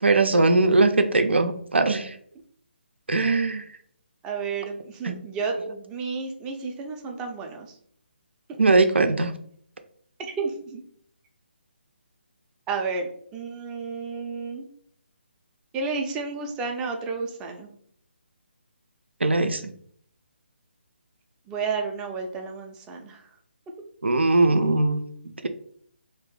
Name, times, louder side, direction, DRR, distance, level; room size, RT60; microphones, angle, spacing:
voice 1, 0.0-2.1 3.1-3.7 5.0-5.1 5.6-5.7 8.6-9.3 19.2-19.7 24.0-25.0, right 3 dB, 80° right, 8 dB, 0.5 m, -20 dB
voice 2, 4.2-7.7 10.2-10.8 12.7-14.7 15.7-17.7 21.5-23.2, right 4 dB, 10° right, 3 dB, 0.4 m, -31 dB
2.7 x 2.4 x 3.6 m, 0.63 s
figure-of-eight pair, 145°, 6 cm